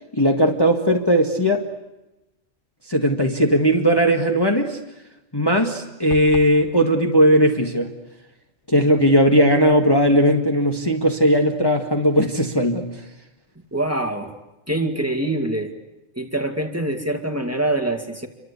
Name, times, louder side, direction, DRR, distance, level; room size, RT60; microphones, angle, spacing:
voice 1, 0.1-1.7 2.9-4.8 5.3-7.9 8.7-12.9, equal, 20° left, 2 dB, 1.8 m, -18 dB
sound 1, 6.1-6.6, left 2 dB, 60° left, 2.6 m, -34 dB
voice 2, 13.7-14.3 14.7-15.7 16.2-18.3, right 1 dB, 10° right, 5 dB, 2.2 m, -24 dB
28.5 x 24.5 x 8.4 m, 0.96 s
omnidirectional pair, 1.3 m